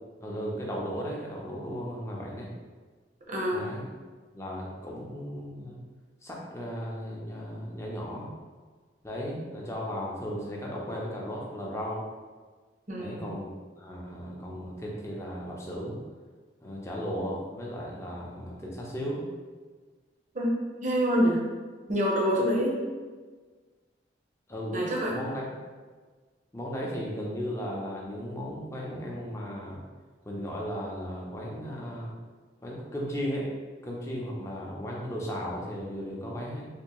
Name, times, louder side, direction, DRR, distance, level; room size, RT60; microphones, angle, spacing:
voice 1, 0.2-2.5 3.5-3.9 4.3-5.8 6.2-8.3 9.0-12.0 13.0-13.5 13.8-16.0 16.6-19.3 24.5-25.5 26.5-29.8 30.2-32.1 32.6-33.5 33.8-36.7, equal, 15° left, -3 dB, 0.6 m, -35 dB
voice 2, 3.3-3.6 12.9-13.3 20.3-20.5 20.8-21.4 21.9-22.8 24.7-25.1, equal, 45° right, -4 dB, 0.7 m, -26 dB
3.5 x 2.7 x 3.0 m, 1.4 s
head